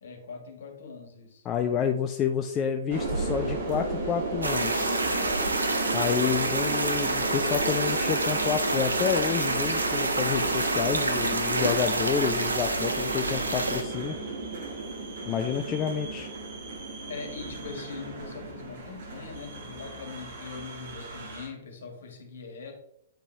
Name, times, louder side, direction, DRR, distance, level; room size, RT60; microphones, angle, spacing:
voice 1, 0.0-1.4 17.1-22.7, left 5 dB, 60° left, 3 dB, 1.9 m, -41 dB
voice 2, 1.4-5.0 5.9-14.2 15.3-16.3, left 8 dB, 25° left, 6 dB, 0.5 m, -29 dB
sound 1, 2.9-21.5, right 2 dB, 50° right, 1.8 m, -34 dB
sound 2, 4.4-13.8, right 2 dB, 75° right, 1.1 m, -28 dB
8.9 x 4.9 x 3.4 m, 0.76 s
figure-of-eight pair, 115°, 0 cm